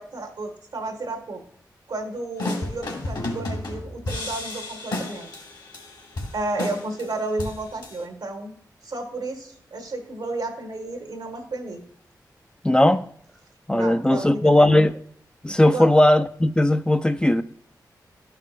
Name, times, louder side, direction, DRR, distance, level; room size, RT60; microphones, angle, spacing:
voice 1, 0.0-1.4 1.9-5.3 6.3-8.6 8.8-11.8 13.7-14.8 15.7-15.9, right 2 dB, 85° right, 1.3 m, -32 dB
sound 1, 2.4-8.0, left 2 dB, 75° left, 1.9 m, -32 dB
voice 2, 12.6-13.0 13.7-14.9 15.4-17.4, left 1 dB, 10° left, 0.4 m, -18 dB
12.0 x 5.6 x 2.5 m
cardioid pair, 50°, 7 cm